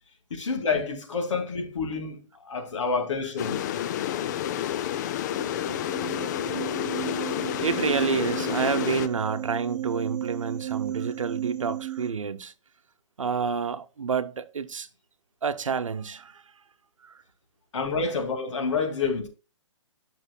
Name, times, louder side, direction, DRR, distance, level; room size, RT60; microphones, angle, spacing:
voice 1, 0.3-3.6 17.7-19.3, left 4 dB, 70° left, 2.2 m, -28 dB
sound 1, 3.4-9.1, left 11 dB, 35° left, 0.5 m, -29 dB
sound 2, 5.3-12.1, right 12 dB, 35° right, 0.7 m, -35 dB
voice 2, 7.6-12.5 13.2-14.9 15.4-16.4 17.0-17.1, right 6 dB, 85° right, 0.8 m, -29 dB
10.5 x 6.2 x 2.2 m
hypercardioid pair, 140°, 16 cm